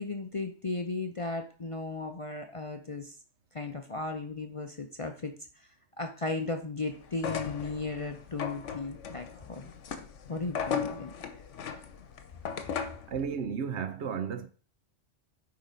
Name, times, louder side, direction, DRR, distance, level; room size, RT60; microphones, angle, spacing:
voice 1, 0.0-3.1 3.5-5.3 6.0-9.7 10.3-11.1, left 3 dB, 35° left, 0.6 m, -36 dB
sound 1, 7.1-13.1, left 6 dB, 80° left, 1.2 m, -37 dB
voice 2, 13.1-14.5, right 7 dB, 70° right, 1.0 m, -33 dB
9.4 x 3.8 x 5.1 m
omnidirectional pair, 1.2 m